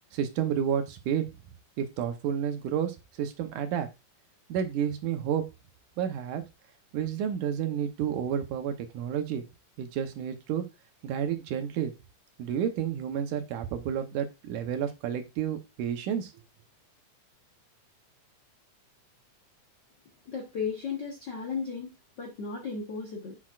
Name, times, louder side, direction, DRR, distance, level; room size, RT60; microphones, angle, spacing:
voice 1, 0.1-1.3 1.8-3.9 4.5-5.4 6.0-6.4 6.9-9.4 9.8-10.7 11.0-11.9 12.4-16.3, right 8 dB, 80° right, 7 dB, 2.4 m, -30 dB
voice 2, 20.3-23.4, left 5 dB, 60° left, -1 dB, 1.2 m, -35 dB
7.4 x 6.3 x 2.4 m, 0.25 s
omnidirectional pair, 3.6 m